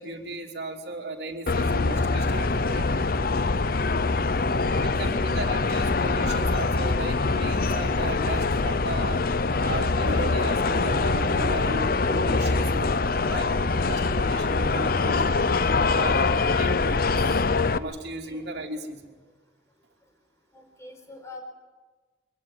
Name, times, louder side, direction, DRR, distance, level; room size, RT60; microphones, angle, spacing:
voice 1, 0.0-3.1 4.8-9.3 9.6-13.5 13.8-15.5 15.9-17.4 17.7-19.1, right 2 dB, 60° right, 1 dB, 3.0 m, -36 dB
sound 1, 1.5-17.8, left 3 dB, 50° left, 0.7 m, -24 dB
voice 2, 4.6-5.4 14.5-14.7 18.2-18.4 20.5-21.4, left 2 dB, 15° left, 3 dB, 4.6 m, -45 dB
23.0 x 17.5 x 9.8 m, 1.3 s
head